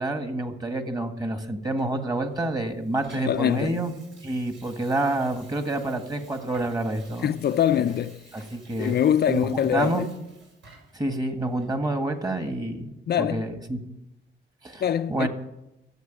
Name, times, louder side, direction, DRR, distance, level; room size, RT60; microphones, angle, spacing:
voice 1, 0.0-3.9 4.2-7.3 7.8-7.9 8.3-9.0 9.3-9.4 9.7-10.0 10.9-12.9 13.2-13.8 14.6-14.8 15.1-15.3, right 1 dB, 20° right, 1.6 m, -28 dB
Water tap faucet / Sink (filling or washing), 1.8-11.1 11.6-11.7, right 3 dB, 75° right, 6.5 m, -53 dB
voice 2, 3.2-3.8 7.2-8.2 8.8-10.1 13.1-13.5 14.8-15.3, left 9 dB, 55° left, 0.5 m, -24 dB
13.0 x 7.9 x 9.1 m
cardioid pair, 120°, 20 cm